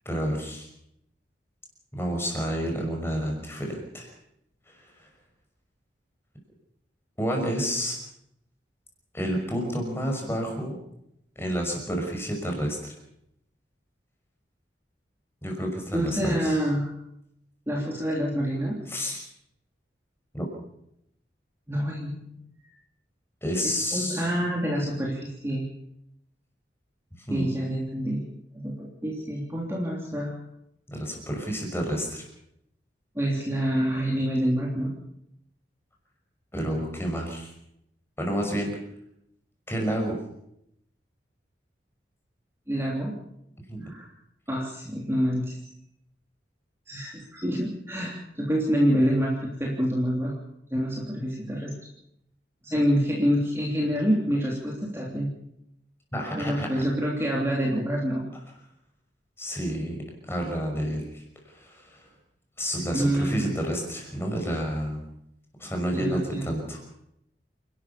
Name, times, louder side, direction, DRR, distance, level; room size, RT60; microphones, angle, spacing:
voice 1, 0.1-0.7 2.0-4.1 4.7-5.1 7.2-8.0 9.1-10.7 11.4-12.9 15.4-16.6 18.9-19.2 20.3-20.5 23.4-24.3 27.2-27.6 30.9-32.2 36.5-37.5 38.2-38.7 39.7-40.2 43.7-43.9 56.1-56.7 59.4-60.0 60.3-62.1 62.6-65.0 65.6-66.8, equal, 15° left, 1 dB, 5.9 m, -30 dB
voice 2, 15.9-16.9 17.7-18.8 21.7-22.4 23.9-25.6 27.3-28.2 28.6-30.3 33.1-34.9 42.7-43.1 43.8-44.1 44.5-45.6 46.9-50.3 50.7-51.7 52.6-55.3 56.3-58.3 62.9-63.5 65.9-66.5, equal, 15° right, -2 dB, 3.3 m, -27 dB
29.0 x 12.5 x 7.1 m, 0.77 s
head